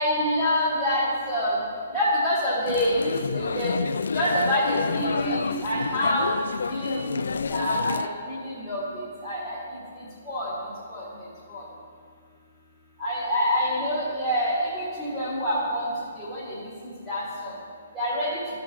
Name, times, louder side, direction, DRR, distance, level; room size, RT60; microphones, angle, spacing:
voice 1, 0.0-1.6 1.9-3.8 4.1-6.3 6.7-7.2 7.5-9.6 10.3-10.5 10.9-11.0 11.5-11.6 13.0-16.7 17.1-17.5 17.9-18.4, equal, 10° right, -11 dB, 1.8 m, -26 dB
sound 1, 2.7-8.1, left 5 dB, 80° left, 0.3 m, -29 dB
13.0 x 6.4 x 4.2 m, 2.2 s
hypercardioid pair, 180°, 0 cm